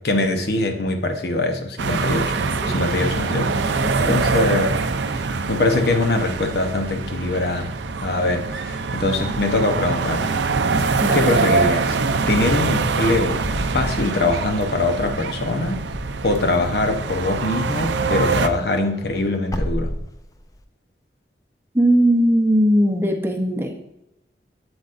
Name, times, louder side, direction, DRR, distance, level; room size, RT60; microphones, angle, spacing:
voice 1, 0.0-2.4 2.7-3.8 4.0-4.8 5.1-7.7 8.0-10.4 10.8-12.0 12.3-13.4 13.7-15.9 16.2-19.9, left 2 dB, 65° left, 4 dB, 0.9 m, -23 dB
sound 1, 1.8-18.5, right 4 dB, 85° right, 0.5 m, -24 dB
voice 2, 3.2-4.2 11.0-11.4 21.7-23.8, equal, 15° right, 3 dB, 0.7 m, -20 dB
Wind / Car, 12.1-17.8 18.2-20.6, equal, 20° left, 0.4 m, -33 dB
8.0 x 7.9 x 2.6 m, 0.87 s
head